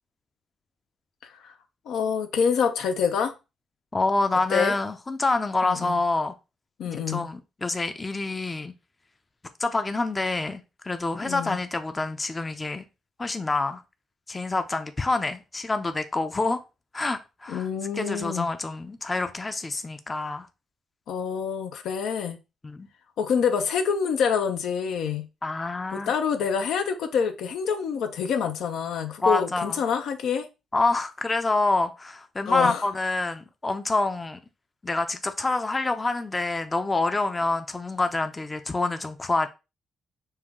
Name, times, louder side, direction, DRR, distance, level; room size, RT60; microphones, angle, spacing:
voice 1, 1.2-1.5 1.9-3.3 4.5-4.7 5.6-6.0 6.8-7.3 11.2-11.6 17.5-18.5 21.1-22.4 23.2-25.3 25.9-30.5 32.5-32.8, left 6 dB, 75° left, 0.7 m, -26 dB
voice 2, 3.9-6.3 6.8-8.7 9.6-12.8 13.2-13.8 14.3-16.6 16.9-17.7 17.9-20.5 22.6-22.9 25.4-26.1 29.2-29.8 30.7-34.4 34.8-39.5, left 3 dB, 20° left, 0.5 m, -27 dB
5.6 x 2.3 x 3.6 m
cardioid pair, 90°, 0 cm